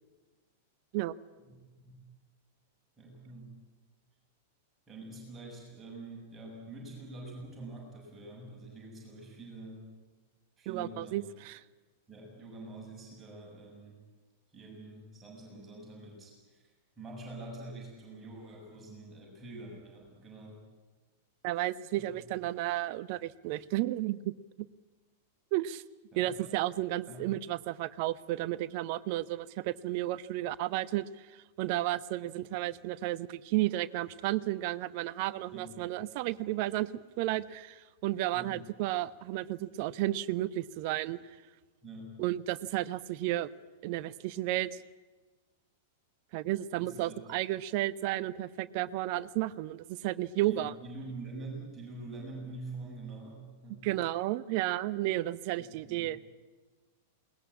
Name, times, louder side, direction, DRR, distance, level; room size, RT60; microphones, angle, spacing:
voice 1, 1.5-2.1 3.0-3.6 4.9-9.9 10.6-11.3 12.1-14.0 14.5-16.7 17.0-20.6 21.9-22.2 26.1-26.6 27.1-27.3 35.5-35.8 38.3-38.6 41.8-42.2 46.8-47.2 50.4-53.9 55.6-56.1, right 2 dB, 15° right, -2 dB, 7.5 m, -46 dB
voice 2, 10.7-11.6 21.4-24.3 25.5-25.8 26.2-41.2 42.2-43.5 43.8-44.8 46.3-50.7 53.8-56.3, right 15 dB, 45° right, 17 dB, 0.8 m, -33 dB
21.5 x 19.5 x 8.7 m, 1.3 s
figure-of-eight pair, 95°, 0 cm